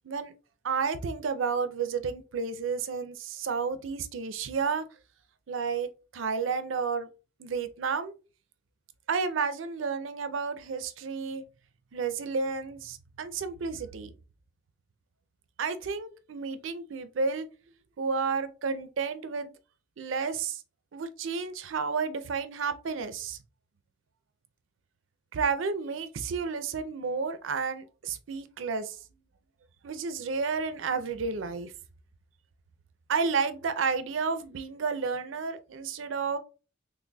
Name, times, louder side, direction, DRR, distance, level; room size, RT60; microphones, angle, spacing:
voice 1, 0.6-4.8 5.5-7.1 7.4-8.1 9.1-11.4 11.9-14.1 15.6-17.5 18.0-19.5 20.0-20.6 20.9-23.4 25.3-29.0 29.8-31.7 33.1-36.4, right 5 dB, 75° right, 0.5 m, -31 dB
3.9 x 3.3 x 2.2 m
head